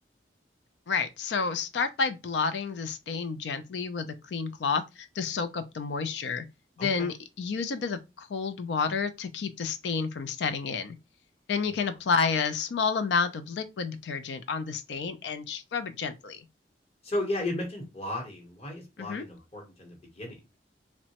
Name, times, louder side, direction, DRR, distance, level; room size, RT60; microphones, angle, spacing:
voice 1, 0.9-6.4 6.8-11.0 11.5-16.4 19.0-19.2, left 5 dB, 75° left, 0.4 m, -30 dB
voice 2, 6.8-7.1 11.7-11.8 17.0-20.4, left 1 dB, 35° left, 0.9 m, -34 dB
2.9 x 2.1 x 2.8 m
head